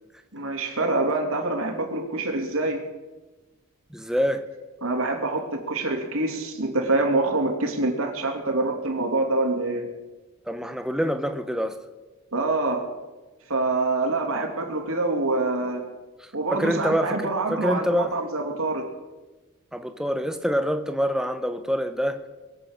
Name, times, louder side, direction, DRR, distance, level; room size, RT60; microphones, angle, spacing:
voice 1, 0.3-2.8 4.8-9.9 12.3-12.9 13.5-15.9 16.3-18.9, right 2 dB, 80° right, 2.9 m, -25 dB
voice 2, 3.9-4.5 10.4-11.8 16.2-18.2 19.7-22.2, equal, 5° right, 0.8 m, -26 dB
22.5 x 8.2 x 6.6 m
head